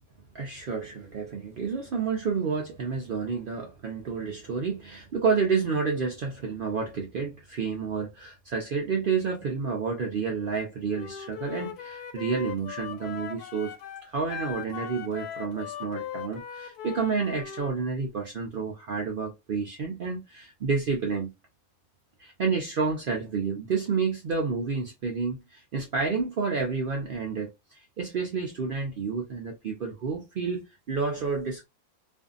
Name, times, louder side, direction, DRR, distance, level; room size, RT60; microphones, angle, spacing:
voice 1, 0.3-13.7 14.0-21.3 22.2-31.6, right 5 dB, 80° right, 0.4 m, -30 dB
Wind instrument woodwind instrument, 10.9-17.7, left 9 dB, 85° left, 1.1 m, -39 dB
2.6 x 2.5 x 2.3 m
omnidirectional pair, 1.6 m